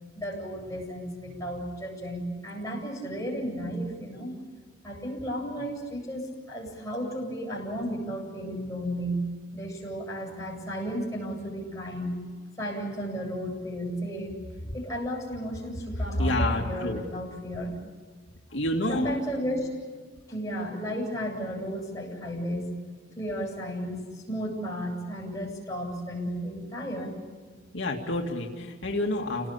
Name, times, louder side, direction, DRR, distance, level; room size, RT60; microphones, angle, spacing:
voice 1, 0.1-4.4 4.8-12.1 12.6-14.4 14.7-17.8 18.9-19.7 20.3-22.8 23.1-27.2, equal, 15° left, -3 dB, 7.9 m, -33 dB
voice 2, 16.2-17.0 18.5-19.1 27.7-29.5, left 1 dB, 80° left, 0 dB, 2.4 m, -28 dB
29.5 x 19.0 x 8.8 m, 1.4 s
head